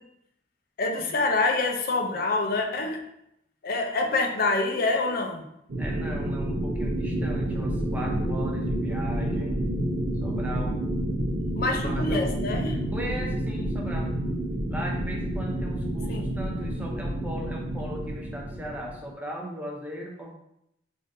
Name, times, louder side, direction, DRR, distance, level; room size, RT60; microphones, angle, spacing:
voice 1, 0.8-3.0 3.6-5.5 11.6-12.8 16.1-16.3, left 3 dB, 50° left, 2 dB, 0.5 m, -26 dB
sound 1, 5.7-19.0, right 1 dB, 85° right, 0.7 m, -29 dB
voice 2, 5.8-9.6 10.2-10.8 11.6-12.4 12.9-14.2 14.7-20.3, right 1 dB, 10° right, -1 dB, 0.5 m, -38 dB
3.6 x 2.5 x 2.6 m, 0.78 s
head